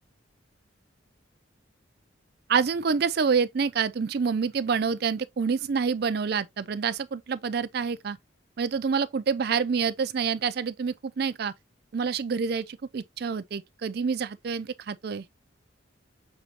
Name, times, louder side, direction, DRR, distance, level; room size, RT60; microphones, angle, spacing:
voice 1, 2.5-8.2 8.6-11.5 11.9-15.2, right 5 dB, 55° right, 0.4 m, -27 dB
6.4 x 2.9 x 2.8 m
head